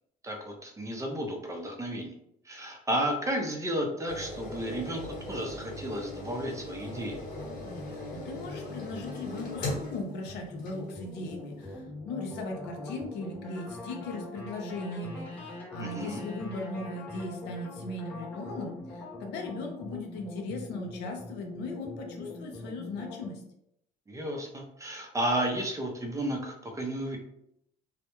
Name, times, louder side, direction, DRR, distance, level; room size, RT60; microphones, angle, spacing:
voice 1, 0.2-2.1 2.4-7.2 15.8-16.2 24.1-27.2, right 1 dB, 20° right, 1 dB, 0.5 m, -33 dB
sound 1, 4.1-11.1 11.6-11.7, left 2 dB, 60° left, 0.9 m, -39 dB
sound 2, 7.3-23.3, left 2 dB, 10° left, 0.9 m, -42 dB
voice 2, 7.8-23.4, left 2 dB, 80° left, 3 dB, 0.6 m, -38 dB
2.2 x 2.0 x 2.9 m, 0.76 s
cardioid pair, 110°, 17 cm